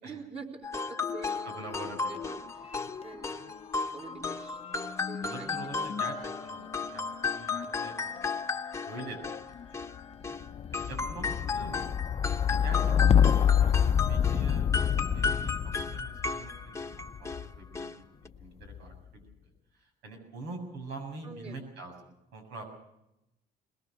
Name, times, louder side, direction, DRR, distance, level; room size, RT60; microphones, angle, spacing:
voice 1, 0.0-1.5 2.1-3.6 3.9-4.6 5.1-5.5 21.2-21.6, right 4 dB, 40° right, -1 dB, 4.1 m, -46 dB
sound 1, 0.6-10.4 10.7-17.5 17.7-18.0 18.3-18.4, left 4 dB, 15° left, 1.1 m, -35 dB
sound 2, 1.0-2.3 2.6-17.6 18.4-19.0, left 8 dB, 35° left, 0.8 m, -30 dB
voice 2, 1.4-2.4 5.2-9.2 9.5-9.6 10.1-10.2 10.7-11.7 12.1-12.2 12.5-12.8 13.1-15.5 15.9-16.8 17.2-19.2 19.7-21.9 22.3-22.6, right 2 dB, 90° right, 4 dB, 7.2 m, -45 dB
22.0 x 21.0 x 6.6 m, 0.87 s
cardioid pair, 110°, 17 cm